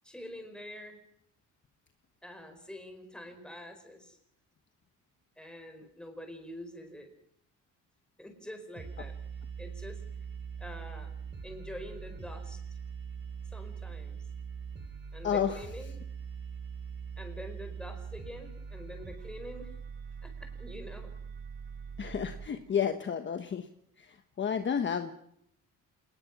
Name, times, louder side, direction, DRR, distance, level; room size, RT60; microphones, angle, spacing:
voice 1, 0.0-1.0 2.2-4.2 5.4-7.1 8.2-9.1 9.6-10.0 10.6-11.1 11.4-12.6 13.5-14.2 15.1-16.0 17.2-19.7 20.2-21.1, equal, 5° left, 5 dB, 4.8 m, -45 dB
sound 1, 8.8-22.5, right 6 dB, 35° right, 2.6 m, -42 dB
voice 2, 22.0-23.6 24.4-25.1, left 7 dB, 35° left, 8 dB, 1.2 m, -30 dB
28.0 x 19.5 x 6.1 m, 0.70 s
cardioid pair, 145°, 32 cm